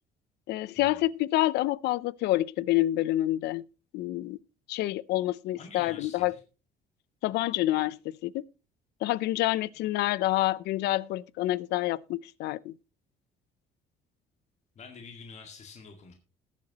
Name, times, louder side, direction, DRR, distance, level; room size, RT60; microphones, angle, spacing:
voice 1, 0.5-3.6 3.9-4.4 4.7-6.3 7.2-8.4 9.0-12.7, left 16 dB, 80° left, 0.5 m, -28 dB
voice 2, 5.6-6.4 14.8-16.1, left 5 dB, 40° left, 2.0 m, -47 dB
20.0 x 7.4 x 2.9 m
cardioid pair, 110°, 17 cm